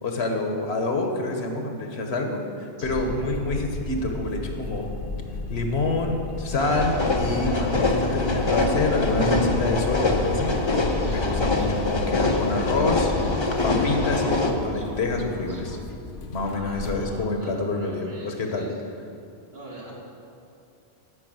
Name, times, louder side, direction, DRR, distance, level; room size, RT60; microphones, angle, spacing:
voice 1, 0.0-2.4 2.8-4.9 5.5-10.5 11.0-13.1 13.6-15.8 16.3-18.7, left 2 dB, 85° left, 3 dB, 1.4 m, -27 dB
sound 1, 2.8-17.1, left 3 dB, 60° left, 0.8 m, -34 dB
sound 2, 6.6-14.5, left 3 dB, 30° left, 0.8 m, -24 dB
sound 3, 10.8-15.8, right 1 dB, 20° right, 0.8 m, -41 dB
voice 2, 16.4-18.7 19.5-19.9, right 1 dB, 70° right, -5 dB, 2.5 m, -44 dB
9.8 x 5.4 x 7.8 m, 2.5 s
omnidirectional pair, 1.1 m